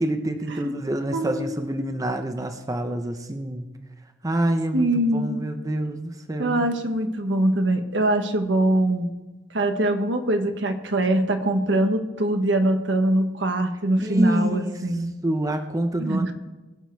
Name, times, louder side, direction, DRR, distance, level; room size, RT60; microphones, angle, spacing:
voice 1, 0.0-3.7 4.2-6.6 14.0-14.8 15.2-16.3, right 1 dB, 20° right, 7 dB, 0.7 m, -27 dB
voice 2, 1.1-1.7 4.7-5.4 6.4-9.1 9.5-15.1 16.0-16.3, right 1 dB, 75° right, 6 dB, 1.3 m, -23 dB
21.0 x 7.4 x 4.6 m, 1.1 s
head